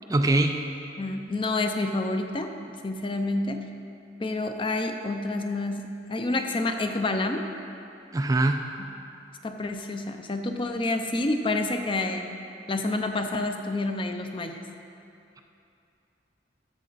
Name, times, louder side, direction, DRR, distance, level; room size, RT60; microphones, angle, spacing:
voice 1, 0.1-0.6 8.1-8.6, right 2 dB, 20° right, 5 dB, 0.3 m, -22 dB
voice 2, 1.0-3.6 4.2-7.5 8.8-8.9 9.4-12.3 12.7-14.6, left 2 dB, 30° left, 5 dB, 0.6 m, -28 dB
13.5 x 7.3 x 4.0 m, 2.7 s
head